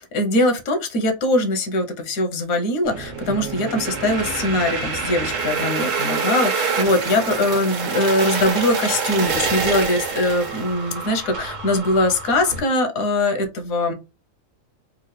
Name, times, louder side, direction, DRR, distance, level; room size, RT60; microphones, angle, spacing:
voice 1, 0.1-13.9, left 1 dB, 80° left, 6 dB, 1.3 m, -21 dB
sound 1, 2.8-12.6, right 5 dB, 65° right, 1.2 m, -26 dB
3.8 x 2.4 x 3.2 m, 0.26 s
omnidirectional pair, 1.4 m